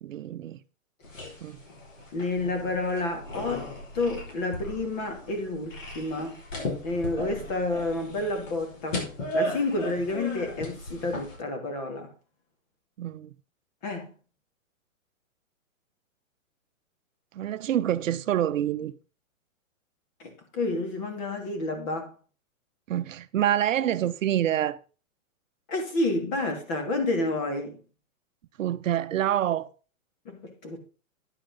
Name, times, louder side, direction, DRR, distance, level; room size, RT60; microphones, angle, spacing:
voice 1, 0.0-0.6 1.4-1.6 13.0-13.3 17.3-18.9 22.9-24.8 28.6-29.7, right 11 dB, 70° right, 0.8 m, -27 dB
sound 1, 1.0-11.4, equal, 65° left, 5.2 m, -36 dB
voice 2, 2.1-6.4 6.8-9.0 9.3-12.1 13.8-14.1 20.2-22.1 25.7-27.8 30.2-30.8, left 2 dB, 30° left, 2.7 m, -30 dB
10.0 x 9.0 x 3.8 m
hypercardioid pair, 165°, 41 cm